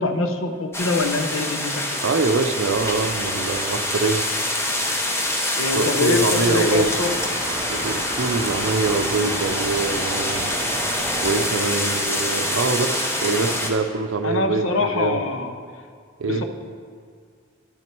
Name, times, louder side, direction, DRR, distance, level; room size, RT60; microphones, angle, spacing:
voice 1, 0.0-2.0 5.6-7.1 14.2-15.5 16.2-16.4, left 3 dB, 80° left, 6 dB, 0.7 m, -24 dB
sound 1, 0.7-13.7, left 1 dB, 15° left, 0.8 m, -25 dB
voice 2, 2.0-4.2 5.7-6.9 7.7-10.6 11.2-15.2 16.2-16.4, right 4 dB, 75° right, 8 dB, 0.5 m, -24 dB
sound 2, 6.4-11.5, right 3 dB, 25° right, 0.5 m, -33 dB
10.5 x 6.1 x 4.5 m, 2.1 s
head